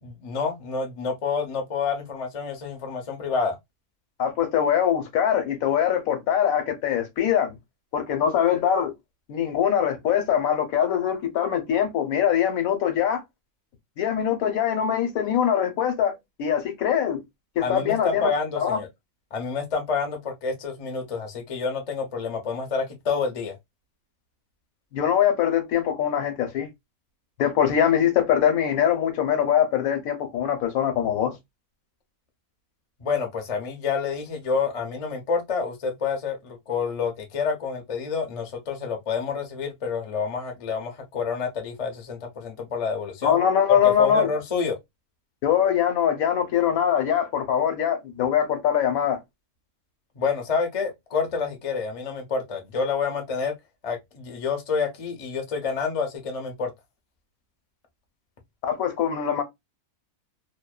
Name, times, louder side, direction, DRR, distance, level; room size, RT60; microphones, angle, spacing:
voice 1, 0.0-3.6 17.6-18.9 19.3-23.5 33.0-43.4 44.0-44.8 50.2-53.5 53.8-56.7, left 5 dB, 45° left, 0.4 m, -28 dB
voice 2, 4.2-7.5 7.9-8.9 9.3-13.2 14.0-16.1 16.4-17.2 17.6-18.8 24.9-26.7 27.4-31.3 43.2-44.3 45.4-49.2 58.6-59.4, left 9 dB, 75° left, 1.1 m, -22 dB
2.6 x 2.1 x 2.2 m
omnidirectional pair, 1.5 m